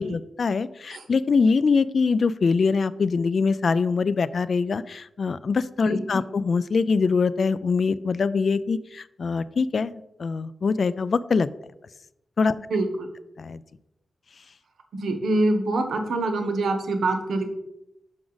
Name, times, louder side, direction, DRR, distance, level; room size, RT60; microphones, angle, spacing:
voice 1, 0.0-11.5 12.4-12.5 13.4-13.6, left 4 dB, 60° left, 17 dB, 0.3 m, -23 dB
voice 2, 12.7-13.1 14.9-17.5, right 2 dB, 85° right, 6 dB, 1.0 m, -25 dB
6.2 x 5.9 x 3.9 m, 0.86 s
cardioid pair, 75°, 0 cm